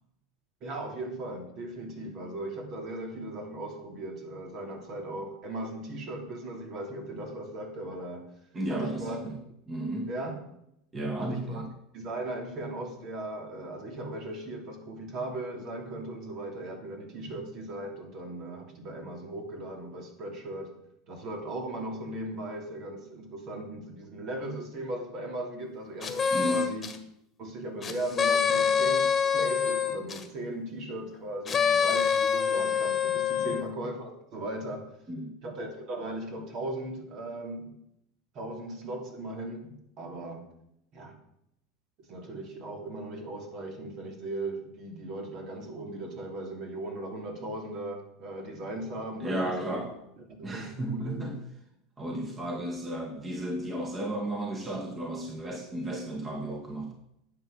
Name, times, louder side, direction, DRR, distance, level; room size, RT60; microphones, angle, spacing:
voice 1, 0.6-8.3 8.7-9.2 10.1-10.4 11.2-11.6 11.9-20.7 21.1-26.9 27.4-34.9 35.4-37.7 38.3-40.5 40.9-41.2 42.0-49.8 50.3-51.3, right 1 dB, 50° right, 3 dB, 3.1 m, -38 dB
voice 2, 8.5-9.4 9.7-10.1 10.9-11.7 26.3-26.7 33.4-33.6 35.1-35.3 49.2-49.9 50.4-51.4 52.0-56.9, right 1 dB, 25° right, 2 dB, 2.0 m, -33 dB
sound 1, 26.0-27.0 27.8-30.2 31.5-33.7, left 7 dB, 25° left, 1.6 m, -26 dB
10.5 x 8.2 x 6.5 m, 0.78 s
supercardioid pair, 120°, 0 cm